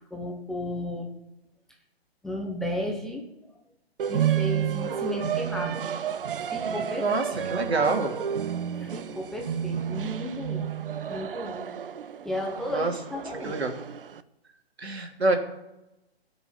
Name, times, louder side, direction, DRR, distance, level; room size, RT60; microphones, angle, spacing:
voice 1, 0.1-1.1 2.2-3.2 4.1-5.9 6.3-7.1 8.8-10.7 11.1-11.7 12.2-13.6, left 1 dB, ahead, -1 dB, 0.9 m, -33 dB
sound 1, 4.0-14.2, right 9 dB, 60° right, 0.8 m, -31 dB
voice 2, 7.0-8.1 12.7-12.9 13.4-13.7 14.8-15.4, right 3 dB, 80° right, 3 dB, 3.1 m, -26 dB
16.5 x 6.2 x 7.3 m, 0.93 s
hypercardioid pair, 150°, 32 cm